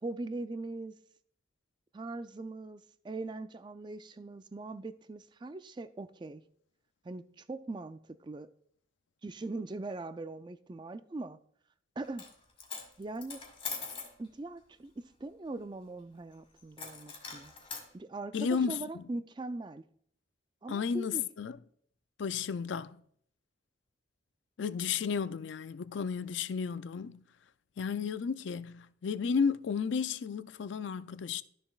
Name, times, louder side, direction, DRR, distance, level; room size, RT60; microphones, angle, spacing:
voice 1, 0.0-1.0 1.9-6.4 7.0-8.5 9.2-11.4 12.0-12.2 13.0-13.4 14.2-17.5 17.9-19.8 20.6-21.3, right 2 dB, 25° right, 0.4 m, -41 dB
Coin (dropping), 12.0-12.3 12.6-14.1 16.8-17.9, left 4 dB, 25° left, 1.9 m, -42 dB
voice 2, 18.3-19.0 20.7-21.6 22.2-23.0 24.6-27.2 27.8-31.4, left 6 dB, 70° left, 0.4 m, -33 dB
12.5 x 6.9 x 2.4 m
head